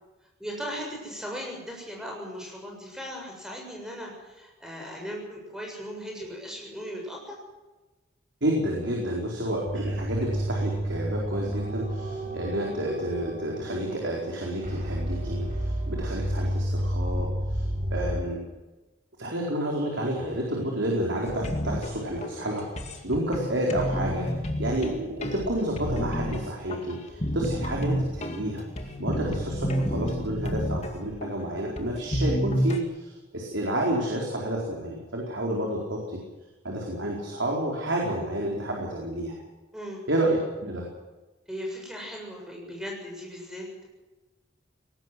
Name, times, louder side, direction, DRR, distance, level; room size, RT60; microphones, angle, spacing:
voice 1, 0.4-7.4 39.7-40.1 41.5-43.9, equal, 5° right, -1 dB, 7.1 m, -38 dB
voice 2, 8.4-18.4 19.2-24.3 24.6-28.6 29.0-36.2 36.6-39.3 40.1-40.8, right 1 dB, 75° right, -1 dB, 4.6 m, -30 dB
sound 1, 9.6-18.2, right 1 dB, 40° right, 5.8 m, -31 dB
bass and drum loop, 21.3-32.8, equal, 35° left, 2.2 m, -30 dB
19.5 x 17.5 x 7.8 m, 1.1 s
head